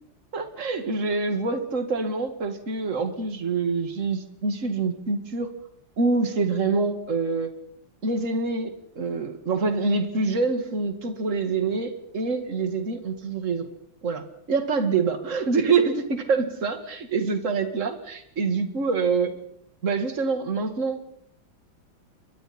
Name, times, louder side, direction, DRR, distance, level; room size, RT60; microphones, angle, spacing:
voice 1, 0.3-5.5 6.0-7.5 8.0-13.7 14.0-19.3 19.8-21.1, right 4 dB, 40° right, 6 dB, 2.4 m, -26 dB
30.0 x 23.5 x 4.4 m, 0.72 s
omnidirectional pair, 2.1 m